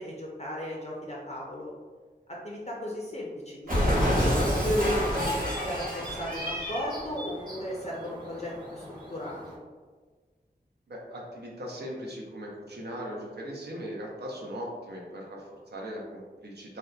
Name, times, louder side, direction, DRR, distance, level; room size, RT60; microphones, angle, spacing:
voice 1, 0.0-1.7 2.4-5.3 5.6-9.5, equal, 40° left, -4 dB, 0.4 m, -34 dB
Cat, 3.7-7.0, equal, 50° right, 1.0 m, -27 dB
sound 1, 3.8-9.6, equal, 25° right, 0.6 m, -45 dB
voice 2, 10.9-16.8, equal, 70° right, -2 dB, 0.5 m, -39 dB
2.7 x 2.1 x 2.3 m, 1.4 s
wide cardioid pair, 60°, 18 cm